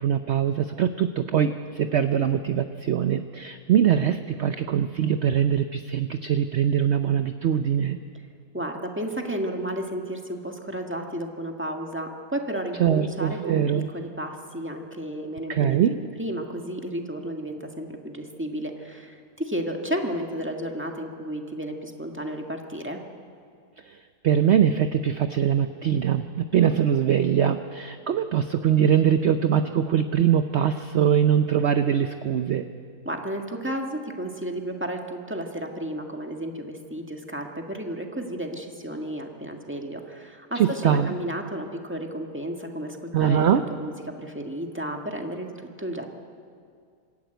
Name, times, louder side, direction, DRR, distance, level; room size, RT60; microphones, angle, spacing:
voice 1, 0.0-8.0 12.8-13.9 15.5-16.0 23.8-24.0 24.2-32.6 40.5-41.1 43.1-43.6, right 9 dB, 60° right, 9 dB, 0.7 m, -22 dB
voice 2, 8.5-13.6 13.9-23.0 33.0-45.5 45.8-46.1, right 1 dB, 5° right, 2 dB, 1.6 m, -32 dB
25.0 x 13.5 x 9.2 m, 2.2 s
omnidirectional pair, 1.8 m